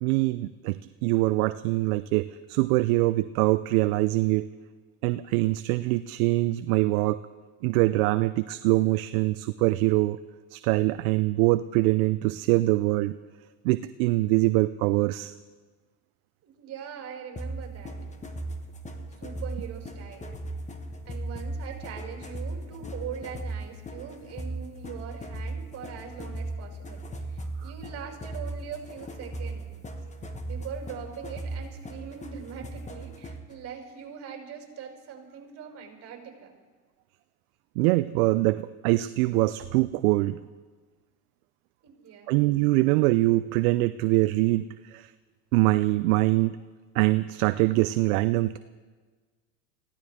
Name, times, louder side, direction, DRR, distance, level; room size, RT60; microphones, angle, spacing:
voice 1, 0.0-4.5 5.0-7.2 7.6-10.2 10.5-13.2 13.6-15.3 37.8-40.4 42.3-45.1 45.5-46.6 46.9-48.6, right 19 dB, 65° right, 13 dB, 0.6 m, -24 dB
voice 2, 16.4-18.0 19.2-20.4 21.0-29.7 30.4-36.5 41.8-42.3, right 8 dB, 35° right, 0 dB, 6.0 m, -42 dB
sound 1, 17.4-33.5, right 1 dB, 15° left, 1.4 m, -37 dB
23.0 x 16.5 x 3.6 m, 1.4 s
supercardioid pair, 110°, 46 cm